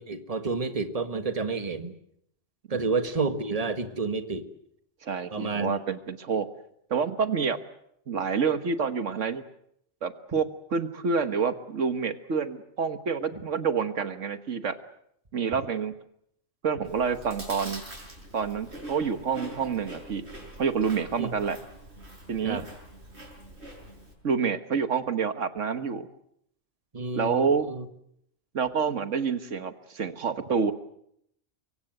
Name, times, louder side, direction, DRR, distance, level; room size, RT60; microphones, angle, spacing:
voice 1, 0.0-1.9 2.7-4.5 5.3-5.7 13.3-13.4 21.2-21.3 22.4-22.6 26.9-27.8, right 4 dB, 30° right, 9 dB, 1.6 m, -30 dB
voice 2, 5.0-6.4 6.9-7.6 8.1-9.4 10.0-10.4 10.7-14.8 15.3-15.9 16.6-17.8 18.3-20.2 20.6-21.6 22.3-22.7 24.2-26.1 27.1-27.7 28.5-30.7, right 6 dB, 80° right, 10 dB, 1.7 m, -28 dB
Chewing mastication, 16.8-24.1, right 1 dB, 60° right, 7.1 m, -44 dB
24.0 x 24.0 x 7.7 m, 0.73 s
omnidirectional pair, 1.3 m